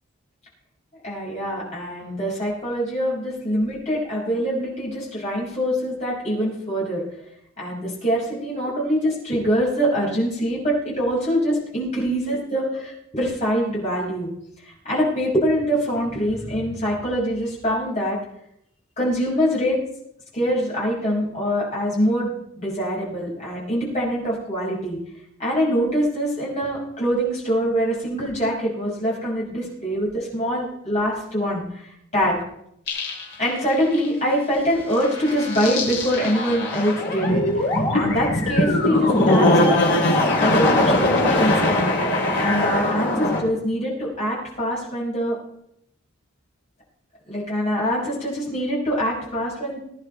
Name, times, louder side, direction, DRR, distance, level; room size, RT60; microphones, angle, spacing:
voice 1, 1.0-7.0 7.6-14.3 14.8-18.2 19.0-19.7 20.3-25.0 25.4-31.6 32.1-32.4 33.4-41.9 42.4-45.3 47.3-49.8, equal, 35° left, -5 dB, 6.1 m, -24 dB
sound 1, 32.9-33.5 33.9-34.0 34.9-43.4, left 1 dB, 55° left, 3.5 m, -21 dB
21.5 x 10.5 x 3.4 m, 0.74 s
head